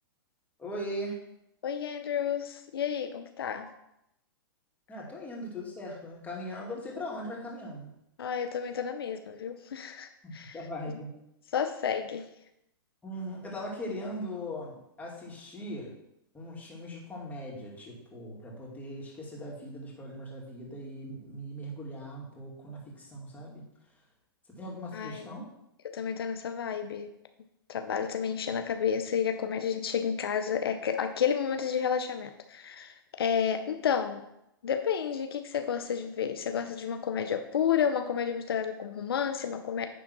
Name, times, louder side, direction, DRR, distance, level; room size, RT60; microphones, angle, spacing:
voice 1, 0.6-1.2 3.5-3.6 4.9-7.9 10.2-11.1 13.0-15.9 16.3-23.6 24.5-25.5, equal, 10° left, -3 dB, 2.5 m, -39 dB
voice 2, 1.6-3.7 8.2-10.5 11.5-12.3 24.9-25.2 25.8-27.1 27.7-34.2 34.6-39.9, left 8 dB, 80° left, 8 dB, 0.7 m, -31 dB
10.0 x 3.7 x 6.0 m, 0.82 s
hypercardioid pair, 120°, 12 cm